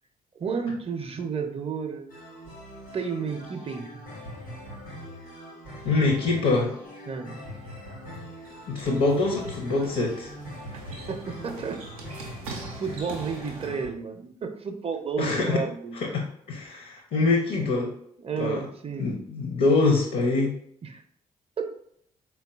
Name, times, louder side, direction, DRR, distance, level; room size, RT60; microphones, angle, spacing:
voice 1, 0.4-2.1 2.9-4.0 7.1-7.4 10.7-11.8 12.8-16.0 18.2-19.1 20.8-21.0 21.6-21.7, right 5 dB, 35° right, 6 dB, 0.5 m, -32 dB
sound 1, 2.1-13.9, equal, 90° left, 1.1 m, -42 dB
voice 2, 5.8-6.7 8.7-10.3 15.2-15.6 15.9-17.9 18.4-18.7 19.0-20.6, left 3 dB, 55° left, 1 dB, 0.6 m, -24 dB
sound 2, 8.1-13.7, right 2 dB, 90° right, 0.4 m, -43 dB
3.7 x 2.2 x 2.3 m, 0.68 s
hypercardioid pair, 40°, 18 cm